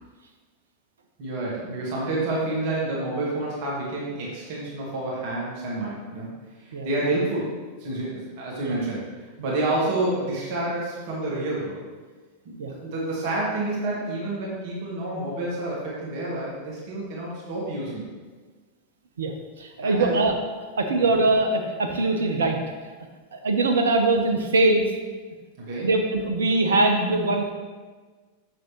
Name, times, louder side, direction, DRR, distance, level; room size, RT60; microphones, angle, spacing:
voice 1, 1.2-6.3 6.6-7.5 7.8-9.0 9.4-11.8 12.5-18.1 19.8-20.2 21.1-21.2 25.7-25.9, right 2 dB, 45° right, -5 dB, 1.8 m, -29 dB
voice 2, 19.2-20.4 20.8-22.6 23.3-24.9 25.8-27.5, right 2 dB, 65° right, 4 dB, 0.7 m, -22 dB
6.5 x 6.3 x 3.0 m, 1.4 s
figure-of-eight pair, 90°, 0 cm